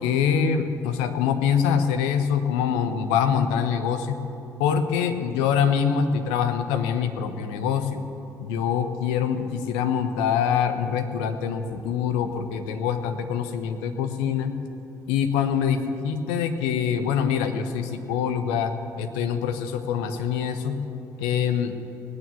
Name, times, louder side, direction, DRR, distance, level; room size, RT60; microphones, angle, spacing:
voice 1, 0.0-4.2 4.6-8.0 8.4-14.5 15.1-18.7 19.0-20.8 21.2-21.7, left 7 dB, 70° left, 7 dB, 1.0 m, -24 dB
18.5 x 9.7 x 6.9 m, 2.7 s
figure-of-eight pair, 45°, 9 cm